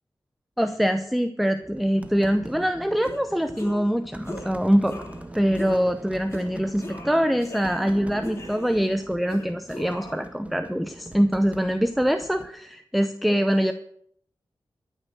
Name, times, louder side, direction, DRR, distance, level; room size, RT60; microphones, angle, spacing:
voice 1, 0.6-4.9 5.3-13.7, equal, ahead, 9 dB, 0.7 m, -24 dB
sound 1, 1.6-12.5, right 1 dB, 15° right, 1.0 m, -42 dB
sound 2, 3.0-3.2 3.5-3.9 4.2-4.5 4.8-5.2 5.6-5.8 6.3-6.5 6.8-7.9 8.2-8.9 9.3-10.2, left 2 dB, 35° left, 2.8 m, -39 dB
14.0 x 6.4 x 7.7 m, 0.67 s
wide cardioid pair, 85°, 9 cm